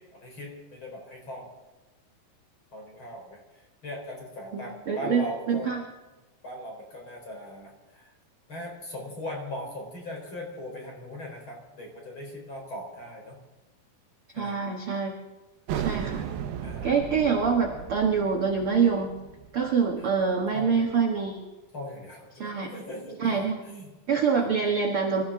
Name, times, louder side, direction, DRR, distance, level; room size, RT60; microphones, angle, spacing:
voice 1, 0.1-1.5 2.7-3.4 3.8-5.7 6.4-8.1 8.5-13.4 14.4-14.5 16.6-17.3 20.5-21.0 21.7-23.4 23.7-23.9, left 1 dB, 30° left, 0 dB, 4.8 m, -39 dB
voice 2, 4.5-5.8 14.3-15.1 15.7-16.2 16.8-19.1 19.5-21.5 22.3-22.7 23.2-23.6 24.1-25.2, right 5 dB, 55° right, 1 dB, 1.6 m, -25 dB
sound 1, 15.7-21.0, right 9 dB, 75° right, 2.7 m, -36 dB
25.5 x 14.5 x 3.8 m, 1.1 s
omnidirectional pair, 4.5 m